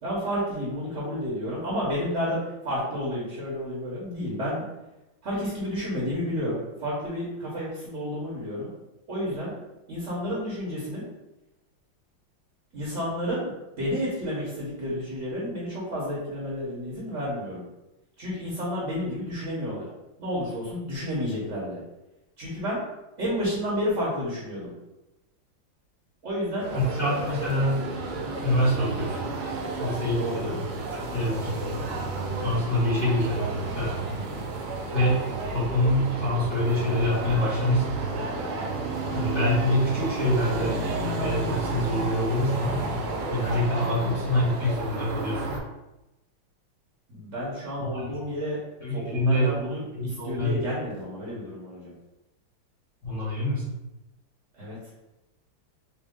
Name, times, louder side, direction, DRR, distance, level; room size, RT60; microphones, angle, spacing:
voice 1, 0.0-4.6 5.2-8.7 9.1-9.5 9.9-11.1 12.7-13.5 13.8-17.6 18.2-19.9 20.2-21.8 22.4-22.8 23.2-24.7 26.2-26.7 30.2-30.5 47.1-48.6 48.9-51.9 54.5-54.8, equal, 45° right, -6 dB, 1.1 m, -31 dB
sound 1, 26.6-45.6, right 2 dB, 75° right, 1.5 m, -32 dB
voice 2, 26.7-27.9 28.4-29.2 29.8-30.6 30.9-31.8 32.4-34.1 34.9-35.2 35.5-38.3 39.1-40.8 41.2-42.9 43.3-45.6 47.9-48.1 48.8-49.5 49.9-50.6 53.0-53.7, left 1 dB, 40° left, -10 dB, 1.1 m, -26 dB
4.6 x 2.3 x 3.6 m, 0.97 s
omnidirectional pair, 2.3 m